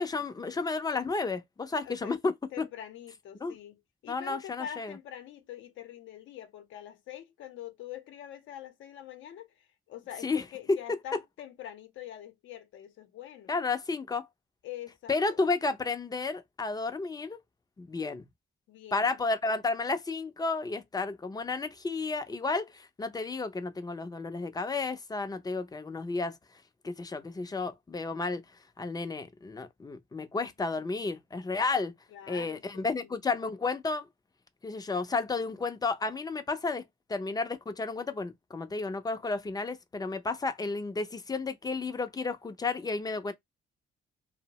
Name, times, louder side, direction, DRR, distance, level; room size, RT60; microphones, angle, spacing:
voice 1, 0.0-2.3 2.6-2.7 3.4-3.5 4.1-4.9 10.2-10.4 10.9-11.0 13.5-14.3 15.1-17.4 17.8-18.2 18.9-26.4 26.8-28.4 28.8-31.9 32.3-34.1 34.6-36.8 37.1-43.3, left 3 dB, 20° left, 0.5 m, -32 dB
voice 2, 1.8-2.2 2.5-13.5 14.6-15.1 18.7-19.2 32.1-33.1, left 10 dB, 75° left, 0.6 m, -45 dB
2.6 x 2.0 x 2.8 m
cardioid pair, 90°, 20 cm